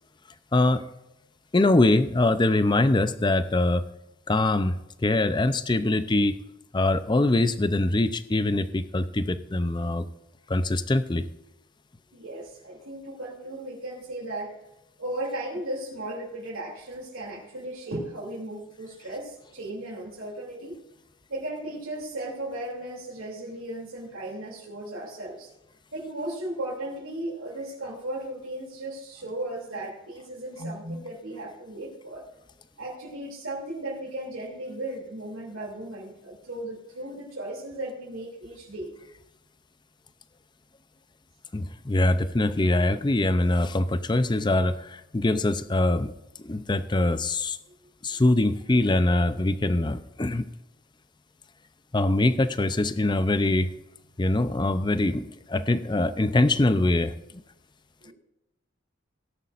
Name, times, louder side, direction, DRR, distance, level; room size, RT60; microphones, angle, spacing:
voice 1, 0.5-0.8 1.5-3.9 4.3-6.4 6.7-10.1 10.5-11.3 41.5-46.1 46.4-47.6 48.0-50.5 51.9-53.7 54.2-57.1, left 2 dB, 20° left, 12 dB, 0.5 m, -23 dB
voice 2, 12.1-14.5 15.0-20.7 21.3-25.5 25.9-32.3 32.8-38.9 58.0-58.1, right 1 dB, 80° right, -5 dB, 2.9 m, -36 dB
17.5 x 11.0 x 2.5 m, 0.92 s
head